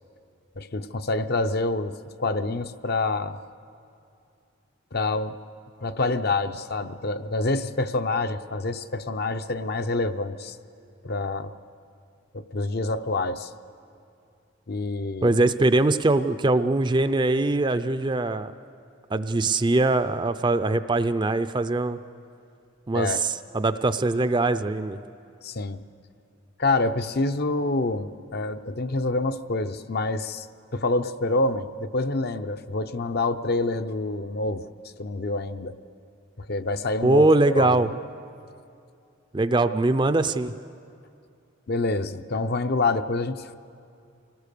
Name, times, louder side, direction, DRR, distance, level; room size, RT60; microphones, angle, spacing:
voice 1, 0.6-3.4 4.9-5.3 5.8-10.6 11.0-11.5 12.3-13.5 14.7-15.4 22.9-23.2 25.4-25.8 26.6-30.5 30.7-34.6 35.0-35.8 36.4-37.3 37.5-37.9 41.7-43.6, left 2 dB, 50° left, 10 dB, 0.6 m, -27 dB
voice 2, 15.2-18.5 19.1-22.0 22.9-25.0 37.0-37.9 39.3-40.5, right 2 dB, 25° right, 12 dB, 0.5 m, -22 dB
25.5 x 19.0 x 6.7 m, 2.5 s
head